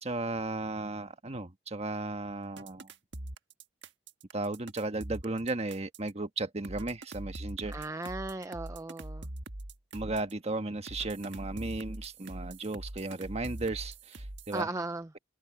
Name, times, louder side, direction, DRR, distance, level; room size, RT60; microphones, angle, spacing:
voice 1, 0.0-2.9 4.3-7.7 9.9-14.7, right 2 dB, 35° right, 1.4 m, -35 dB
sound 1, 2.6-6.1 6.6-10.3 10.9-14.6, right 1 dB, 70° right, 1.5 m, -42 dB
voice 2, 7.7-9.3 14.5-15.1, right 2 dB, 15° right, 0.5 m, -36 dB
head